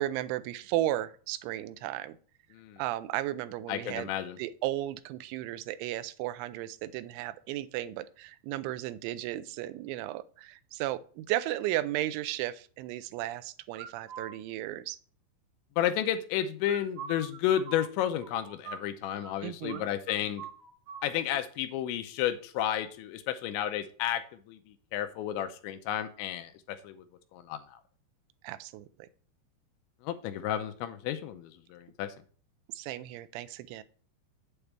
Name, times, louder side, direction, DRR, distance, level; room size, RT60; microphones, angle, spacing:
voice 1, 0.0-2.2 2.8-4.1 4.4-15.0 19.4-19.9 28.4-29.1 32.7-33.8, right 14 dB, 85° right, 14 dB, 3.0 m, -34 dB
voice 2, 3.7-4.4 15.8-20.4 21.0-24.2 24.5-24.6 24.9-27.0 27.3-27.6 30.0-32.1, left 11 dB, 80° left, 8 dB, 3.0 m, -32 dB
sound 1, 13.7-14.3 16.6-19.3 19.7-19.8 20.1-21.1, right 7 dB, 70° right, 2.8 m, -43 dB
8.6 x 8.0 x 3.3 m, 0.43 s
omnidirectional pair, 5.4 m